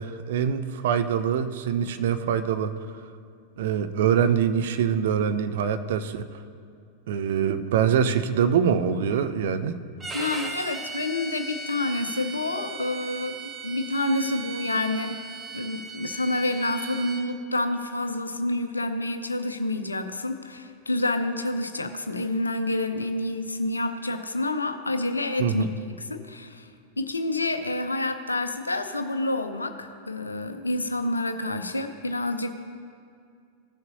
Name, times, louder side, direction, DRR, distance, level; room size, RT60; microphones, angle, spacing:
voice 1, 0.0-2.7 3.6-6.3 7.1-9.8 25.4-25.7, right 8 dB, 55° right, 10 dB, 0.5 m, -24 dB
Bowed string instrument, 10.0-17.3, right 4 dB, 15° right, 0.8 m, -37 dB
voice 2, 10.1-15.2 15.5-25.6 26.0-26.7 27.0-32.5, left 2 dB, 80° left, 9 dB, 0.5 m, -28 dB
16.0 x 6.7 x 2.7 m, 2.3 s
figure-of-eight pair, 90°, 0 cm